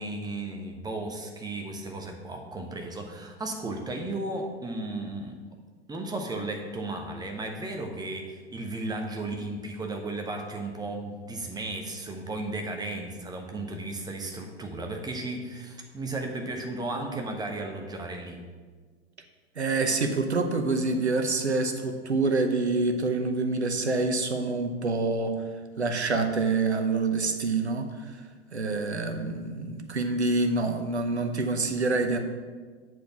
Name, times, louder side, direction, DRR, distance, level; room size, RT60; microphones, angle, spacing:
voice 1, 0.0-5.4 5.9-18.4, right 2 dB, 10° right, 2 dB, 1.1 m, -35 dB
voice 2, 19.6-25.3 25.8-28.2 28.5-32.2, right 3 dB, 90° right, 6 dB, 0.9 m, -26 dB
7.9 x 4.6 x 5.9 m, 1.5 s
figure-of-eight pair, 90°, 32 cm